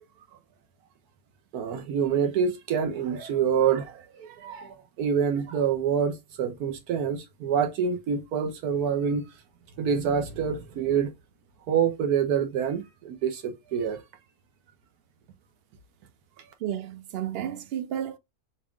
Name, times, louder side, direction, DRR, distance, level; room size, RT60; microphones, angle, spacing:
voice 1, 1.5-9.3 9.8-11.1 11.7-14.0, right 7 dB, 85° right, 1.4 m, -26 dB
voice 2, 16.6-18.2, right 10 dB, 60° right, 0.7 m, -32 dB
6.2 x 2.3 x 3.6 m
omnidirectional pair, 1.6 m